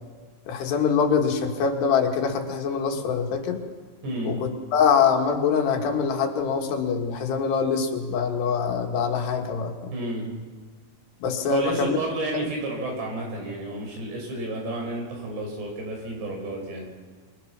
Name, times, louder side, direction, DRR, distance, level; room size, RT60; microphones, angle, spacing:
voice 1, 0.5-3.6 4.3-9.9 11.2-12.0 12.4-12.5, left 6 dB, 80° left, 3 dB, 4.0 m, -24 dB
voice 2, 4.0-4.4 9.9-10.3 11.5-16.9, right 2 dB, 90° right, 1 dB, 7.4 m, -31 dB
26.5 x 23.0 x 6.1 m, 1.5 s
omnidirectional pair, 4.7 m